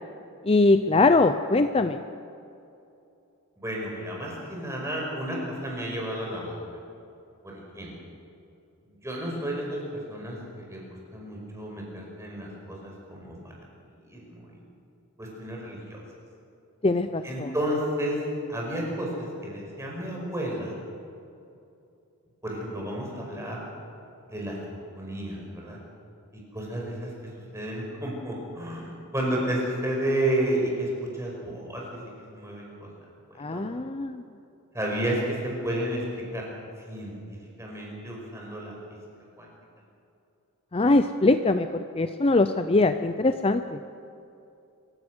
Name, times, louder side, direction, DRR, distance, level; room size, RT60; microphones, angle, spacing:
voice 1, 0.4-2.0 16.8-17.5 33.4-34.2 40.7-43.8, left 2 dB, 25° left, 9 dB, 0.5 m, -22 dB
voice 2, 3.6-6.5 7.4-7.9 8.8-13.6 14.1-14.6 15.2-16.0 17.2-18.2 18.5-20.7 22.4-23.6 24.3-24.6 24.9-25.8 26.5-27.1 27.5-32.0 32.3-32.9 33.4-33.6 34.7-36.4 36.9-37.2 37.6-38.7 39.4-39.5, right 1 dB, 15° right, -2 dB, 5.4 m, -31 dB
27.0 x 16.0 x 6.3 m, 2.7 s
head